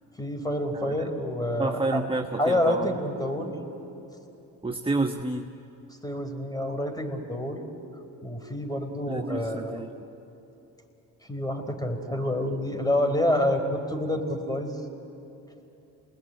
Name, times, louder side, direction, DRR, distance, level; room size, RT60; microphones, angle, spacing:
voice 1, 0.2-2.0 2.4-3.5 6.0-7.6 8.2-9.8 11.3-14.8, left 1 dB, 10° left, 5 dB, 4.6 m, -28 dB
voice 2, 0.7-1.1 1.6-3.0 4.6-5.5 9.1-9.9, right 2 dB, 15° right, 5 dB, 1.3 m, -29 dB
28.5 x 20.5 x 9.2 m, 2.9 s
hypercardioid pair, 50°, 41 cm